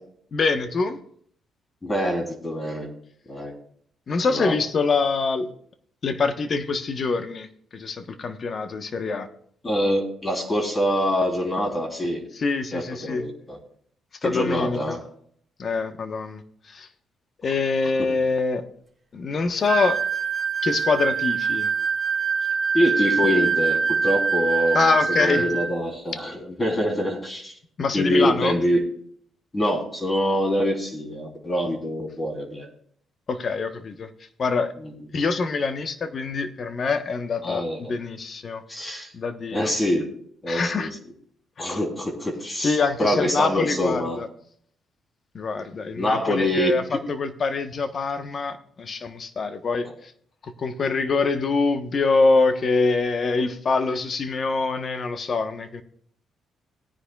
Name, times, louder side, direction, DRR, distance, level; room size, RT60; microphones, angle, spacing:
voice 1, 0.3-1.0 4.1-5.5 6.0-9.3 12.3-13.3 14.2-15.0 15.6-16.9 17.4-18.7 19.1-20.0 20.6-21.7 24.7-25.5 27.8-28.6 33.3-34.1 34.4-34.7 35.1-38.6 39.1-39.7 40.5-40.9 41.6-41.8 42.6-44.3 45.3-50.1 50.4-55.8, left 4 dB, 45° left, 8 dB, 1.1 m, -25 dB
voice 2, 1.8-2.9 3.3-3.5 4.3-4.5 9.6-12.2 12.7-13.6 14.2-15.0 22.7-27.5 27.9-28.8 29.5-32.7 34.8-34.9 37.4-37.8 38.7-39.1 39.5-40.1 40.4-40.9 41.6-44.2 46.0-47.0, equal, 20° left, 1 dB, 3.4 m, -25 dB
sound 1, 19.7-25.7, right 5 dB, 20° right, 3.2 m, -24 dB
18.5 x 10.0 x 2.4 m, 0.63 s
cardioid pair, 90°, 0 cm